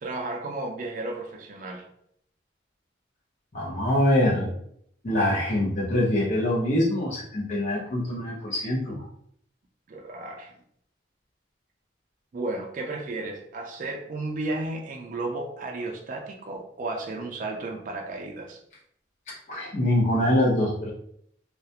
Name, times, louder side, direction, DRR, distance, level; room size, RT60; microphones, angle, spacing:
voice 1, 0.0-1.9 9.9-10.5 12.3-18.6, right 2 dB, 45° right, 1 dB, 0.3 m, -33 dB
voice 2, 3.5-4.5 5.0-9.0 19.5-20.9, left 1 dB, 40° left, -6 dB, 0.7 m, -24 dB
2.3 x 2.1 x 2.7 m, 0.68 s
head